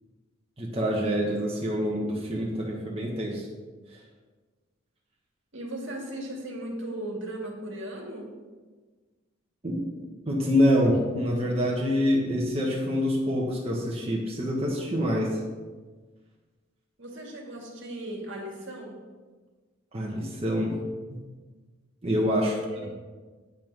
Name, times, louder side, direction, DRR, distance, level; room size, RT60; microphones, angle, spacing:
voice 1, 0.6-3.5 3.9-4.0 9.6-15.4 19.9-20.7 22.0-22.5, equal, 30° right, -4 dB, 1.3 m, -26 dB
voice 2, 5.5-8.4 17.0-19.0 22.5-22.9, right 1 dB, 60° right, 0 dB, 2.1 m, -37 dB
9.0 x 5.9 x 6.1 m, 1.4 s
head